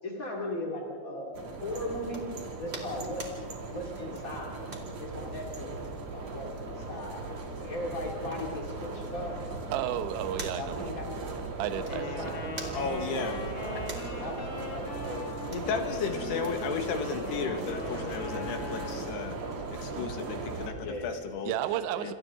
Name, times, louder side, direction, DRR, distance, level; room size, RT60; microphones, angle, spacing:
voice 1, 0.0-2.2 2.6-3.3 3.7-4.5 5.0-5.8 6.1-7.2 7.5-9.3 10.5-11.3 11.7-12.5 12.9-15.7 20.7-21.2, left 1 dB, 35° left, -2 dB, 1.3 m, -38 dB
sound 1, 1.3-20.7, right 3 dB, 40° right, 2.9 m, -38 dB
sound 2, 1.7-18.7, right 2 dB, 20° right, 2.1 m, -50 dB
voice 2, 9.7-10.8 11.6-12.2 21.4-22.1, right 11 dB, 75° right, 10 dB, 3.1 m, -32 dB
Wind instrument woodwind instrument, 11.9-19.0, left 1 dB, 50° left, 5.1 m, -41 dB
voice 3, 12.7-13.4 15.5-19.4 19.8-21.5 22.0-22.1, left 5 dB, 65° left, 5 dB, 3.2 m, -34 dB
29.5 x 27.5 x 3.7 m, 2.1 s
omnidirectional pair, 5.7 m